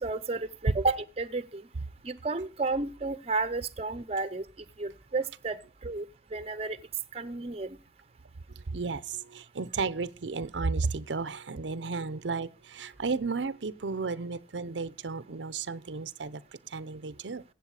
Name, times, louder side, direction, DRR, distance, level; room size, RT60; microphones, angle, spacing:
voice 1, 0.0-1.6 2.0-4.4 4.8-6.1 6.3-6.8 7.1-7.8, right 3 dB, 35° right, 0.8 m, -32 dB
voice 2, 8.5-17.4, right 4 dB, 90° right, 0.7 m, -33 dB
16.0 x 7.6 x 4.9 m
head